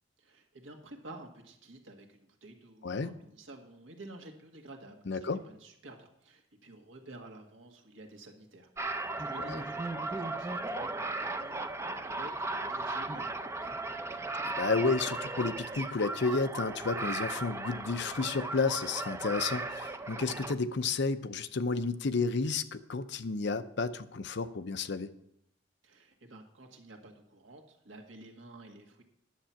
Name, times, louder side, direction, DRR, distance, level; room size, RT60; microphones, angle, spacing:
voice 1, 0.2-14.2 25.8-29.0, right 2 dB, 75° right, 2 dB, 1.8 m, -51 dB
voice 2, 2.8-3.1 5.1-5.4 9.5-9.6 14.4-25.1, left 4 dB, 60° left, 12 dB, 0.6 m, -31 dB
sound 1, 8.8-20.5, right 2 dB, 15° right, 0.5 m, -36 dB
10.5 x 7.6 x 5.7 m, 0.77 s
head